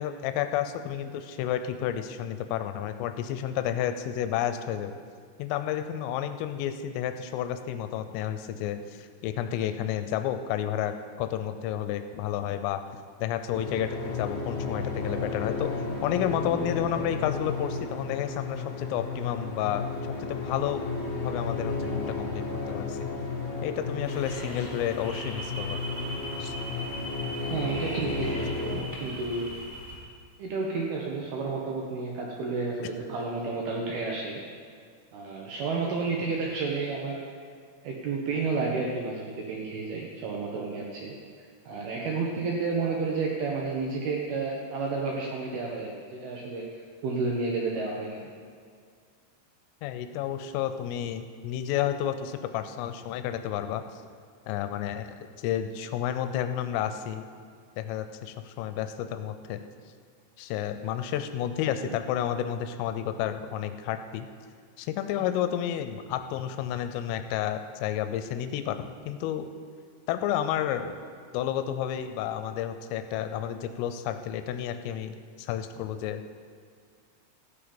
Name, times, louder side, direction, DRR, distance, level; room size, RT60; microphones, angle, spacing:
voice 1, 0.0-5.0 5.4-10.9 11.2-12.8 13.2-15.8 16.0-19.9 20.2-20.8 21.2-23.1 23.6-25.8 26.4-26.6 49.8-53.8 54.5-55.1 55.4-57.2 57.8-59.6 60.4-64.3 64.8-69.5 70.1-71.0 71.3-76.2, left 10 dB, 85° left, 9 dB, 3.2 m, -31 dB
sound 1, 13.5-28.8, left 4 dB, 70° left, 1.9 m, -33 dB
voice 2, 16.4-16.8 24.4-24.5 27.5-29.5 30.4-34.4 35.1-37.4 37.8-41.2 41.7-46.7 47.0-48.3 61.8-61.9, right 4 dB, 80° right, -1 dB, 2.2 m, -31 dB
Birds and Insects near Dam - Cathedral Ranges, 24.0-30.0, equal, 15° left, 0.6 m, -40 dB
15.0 x 8.7 x 5.2 m, 2.1 s
omnidirectional pair, 6.0 m